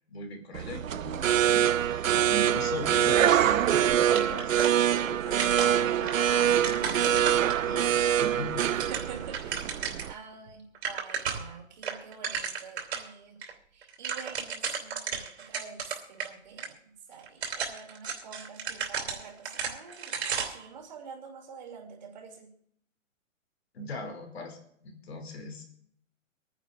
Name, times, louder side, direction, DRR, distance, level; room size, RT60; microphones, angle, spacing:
voice 1, 0.1-8.7 23.7-25.7, left 1 dB, 50° left, 4 dB, 2.8 m, -40 dB
sound 1, 0.5-10.1, right 10 dB, 75° right, 0.6 m, -25 dB
sound 2, 4.1-5.1 5.4-7.9 8.3-10.1 10.5-10.6 10.7-11.5 11.8-13.1 13.4-13.5 13.8-16.3 16.6-16.7 17.2-20.7, right 6 dB, 55° right, 2.9 m, -34 dB
voice 2, 8.7-9.7 10.1-13.4 13.7-22.5, right 5 dB, 35° right, 3 dB, 2.6 m, -47 dB
25.5 x 10.0 x 2.5 m, 0.67 s
hypercardioid pair, 175°, 40 cm